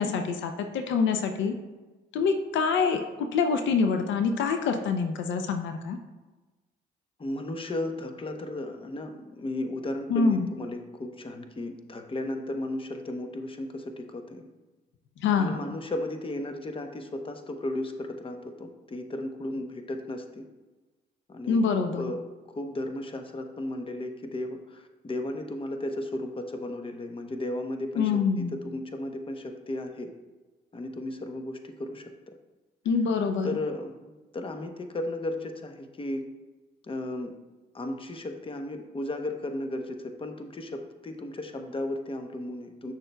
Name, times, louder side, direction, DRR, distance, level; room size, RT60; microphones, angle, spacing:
voice 1, 0.0-1.5 2.1-6.0 10.1-10.5 15.2-15.6 21.5-22.1 28.0-28.6 32.9-33.5, left 5 dB, 75° left, 6 dB, 0.6 m, -25 dB
voice 2, 7.2-14.5 15.4-20.5 21.3-21.6 22.0-22.2 22.5-30.1 30.7-32.4 33.4-36.2 36.8-37.4 37.7-42.9, left 1 dB, 25° left, 6 dB, 0.8 m, -35 dB
8.6 x 6.4 x 2.3 m, 1.2 s
supercardioid pair, 65°, 20 cm